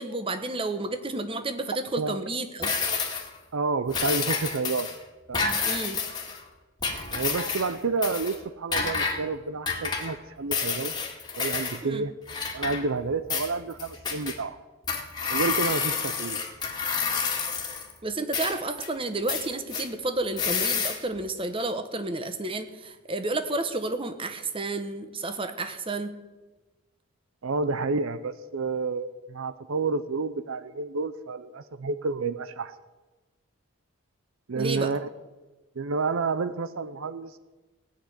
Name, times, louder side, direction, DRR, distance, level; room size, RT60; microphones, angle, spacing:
voice 1, 0.0-2.7 5.7-6.0 11.8-12.0 18.0-26.1 34.5-34.9, right 2 dB, 25° right, 9 dB, 1.1 m, -31 dB
sound 1, 2.6-3.3 3.9-4.9 5.3-6.4 6.8-7.7 8.0-8.4 8.7-9.2 9.7-10.1 10.5-11.8 12.3-13.0 13.3-14.3 14.9-17.9 18.3-18.9 19.3-19.8 20.4-21.0, left 5 dB, 20° left, 1.9 m, -29 dB
voice 2, 3.5-4.9 5.3-5.5 7.1-10.9 11.4-12.1 12.5-14.6 15.3-16.4 27.4-32.7 34.5-35.1 35.8-37.4, right 4 dB, 70° right, 14 dB, 0.6 m, -29 dB
17.5 x 6.6 x 9.6 m, 1.2 s
head